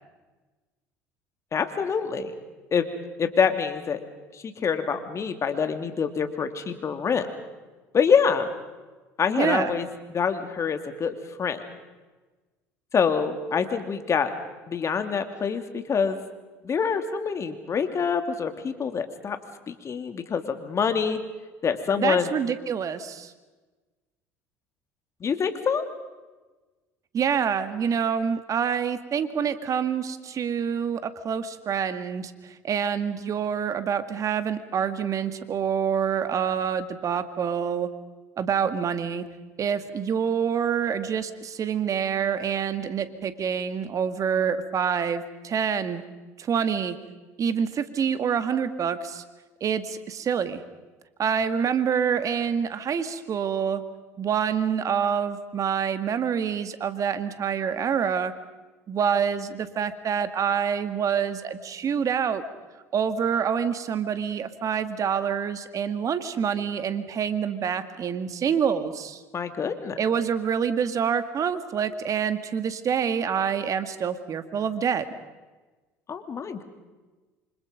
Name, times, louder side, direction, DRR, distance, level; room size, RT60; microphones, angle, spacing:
voice 1, 1.5-2.3 2.7-2.9 3.2-4.0 4.3-7.3 7.9-8.5 9.2-11.6 12.9-14.3 14.7-16.2 16.6-19.4 19.7-21.2 21.6-22.3 25.2-25.8 69.3-70.0 76.1-76.6, left 6 dB, 40° left, 8 dB, 2.9 m, -26 dB
voice 2, 9.4-9.7 22.0-23.3 27.1-37.9 38.4-39.2 39.6-46.0 46.4-47.0 47.4-49.2 49.6-50.6 51.2-53.8 54.2-58.3 58.9-62.4 62.9-69.2 70.0-75.1, right 7 dB, 45° right, 10 dB, 2.1 m, -26 dB
28.0 x 25.5 x 5.3 m, 1.2 s
hypercardioid pair, 70°, 8 cm